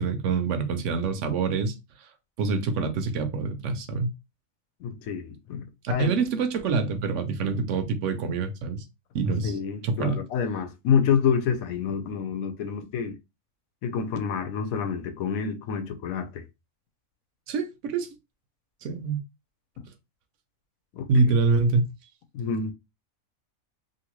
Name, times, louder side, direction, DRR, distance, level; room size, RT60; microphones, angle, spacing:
voice 1, 0.0-1.7 2.4-4.1 5.8-8.8 9.1-9.5 9.8-10.2 17.5-18.1 18.8-19.2 21.1-21.9, right 4 dB, 65° right, 0.9 m, -25 dB
voice 2, 4.8-6.1 9.4-13.2 13.8-16.4 20.9-21.1 22.3-22.7, left 7 dB, 85° left, 1.0 m, -27 dB
2.7 x 2.7 x 3.0 m
omnidirectional pair, 1.4 m